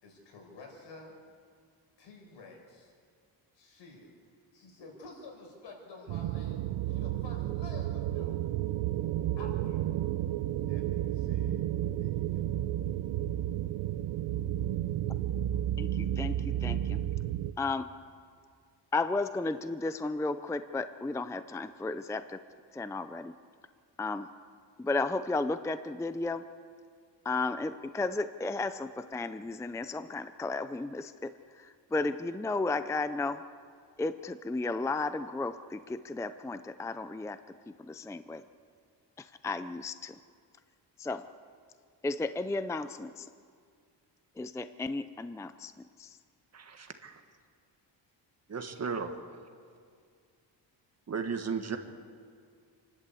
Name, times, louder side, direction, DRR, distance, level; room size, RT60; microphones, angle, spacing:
voice 1, 0.0-1.2 2.0-2.9 3.5-4.2 4.5-6.6 6.9-8.4 9.4-9.8 10.7-11.6 12.0-12.5, left 3 dB, 80° left, 1 dB, 5.6 m, -50 dB
sound 1, 6.1-17.5, right 12 dB, 90° right, 0.8 m, -32 dB
voice 2, 15.8-17.0 17.6-17.9 18.9-22.4 22.7-23.3 24.0-24.3 24.8-26.5 27.2-33.4 34.0-38.4 39.2-40.2 41.0-41.3 42.0-43.3 44.4-46.2, left 3 dB, 5° left, 11 dB, 0.5 m, -34 dB
voice 3, 46.5-47.2 48.5-49.2 51.1-51.8, right 5 dB, 35° right, 6 dB, 1.7 m, -35 dB
28.5 x 11.5 x 8.4 m, 2.1 s
cardioid pair, 140°, 43 cm